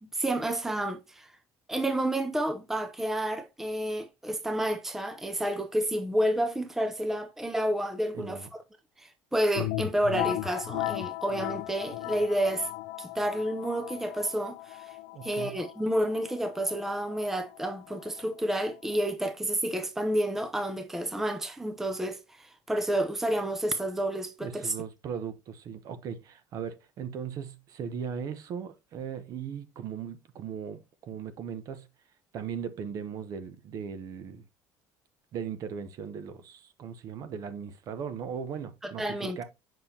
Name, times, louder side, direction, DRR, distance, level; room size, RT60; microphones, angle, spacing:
voice 1, 0.0-1.3 1.7-8.6 9.0-12.7 13.0-15.0 15.2-24.7 38.8-39.4, right 1 dB, 5° right, 0.6 m, -30 dB
voice 2, 8.1-8.5 15.1-15.6 24.4-31.9 32.3-34.5 35.3-39.4, right 7 dB, 50° right, 1.0 m, -38 dB
sound 1, 9.6-19.1, left 17 dB, 85° left, 0.4 m, -37 dB
7.1 x 5.8 x 2.8 m
cardioid pair, 140°, 8 cm